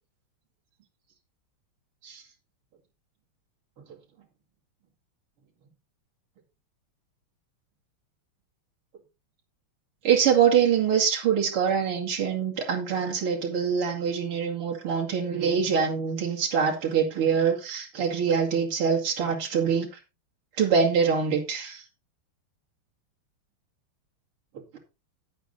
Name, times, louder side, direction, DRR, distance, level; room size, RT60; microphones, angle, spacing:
voice 1, 10.0-19.9 20.6-21.8, right 7 dB, 90° right, -2 dB, 3.3 m, -24 dB
10.5 x 8.9 x 4.1 m, 0.28 s
omnidirectional pair, 2.3 m